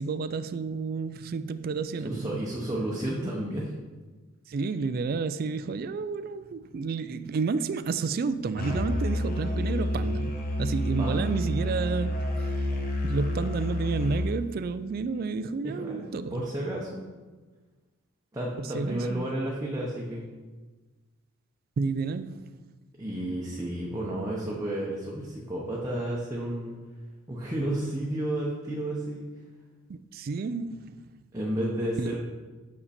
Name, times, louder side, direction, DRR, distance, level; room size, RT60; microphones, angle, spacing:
voice 1, 0.0-2.4 4.5-12.2 13.0-16.5 18.6-19.2 21.8-22.5 29.9-31.0 32.0-32.2, right 4 dB, 45° right, 0.3 m, -31 dB
voice 2, 2.0-3.7 11.0-11.3 15.6-17.0 18.3-20.2 23.0-26.7 27.3-29.3 31.3-32.2, right 1 dB, 15° right, 0.8 m, -32 dB
Musical instrument, 8.6-14.2, left 1 dB, 40° left, 1.0 m, -29 dB
6.6 x 5.7 x 4.1 m
head